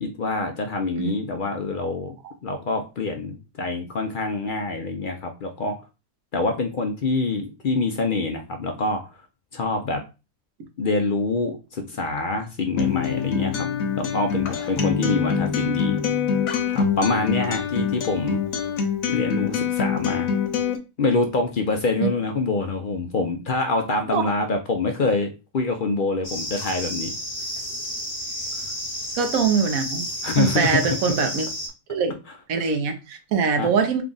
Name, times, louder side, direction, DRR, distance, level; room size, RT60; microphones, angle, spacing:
voice 1, 0.0-2.2 2.4-5.8 6.3-9.0 9.5-10.0 10.8-13.7 14.0-16.0 16.7-18.4 19.1-20.3 21.0-27.1 30.2-31.3 33.6-33.7, left 3 dB, 55° left, 4 dB, 0.5 m, -25 dB
Acoustic guitar, 12.8-20.8, left 6 dB, 75° left, 1.1 m, -25 dB
sound 1, 26.2-31.7, equal, 35° left, 0.9 m, -31 dB
voice 2, 29.2-30.1 30.4-31.5 31.9-32.1 32.5-34.0, right 6 dB, 80° right, 7 dB, 1.2 m, -22 dB
3.4 x 2.3 x 3.9 m, 0.28 s
omnidirectional pair, 1.5 m